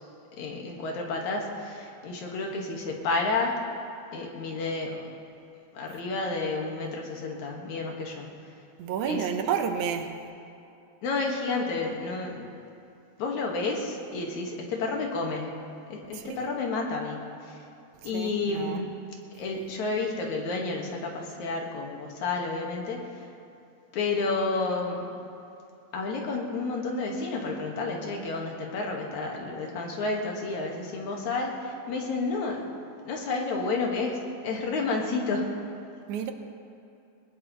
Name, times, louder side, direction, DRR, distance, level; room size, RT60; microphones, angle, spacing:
voice 1, 0.3-3.6 4.1-5.1 5.7-8.3 9.1-9.3 11.0-12.5 13.2-17.7 18.0-18.9 19.3-23.3 23.9-25.1 25.9-32.7 33.1-35.5, left 3 dB, 75° left, 0 dB, 3.0 m, -31 dB
voice 2, 8.8-10.2 16.1-16.4 18.0-18.9 36.1-36.3, right 7 dB, 90° right, 6 dB, 2.4 m, -30 dB
20.5 x 19.5 x 3.1 m, 2.7 s
omnidirectional pair, 3.3 m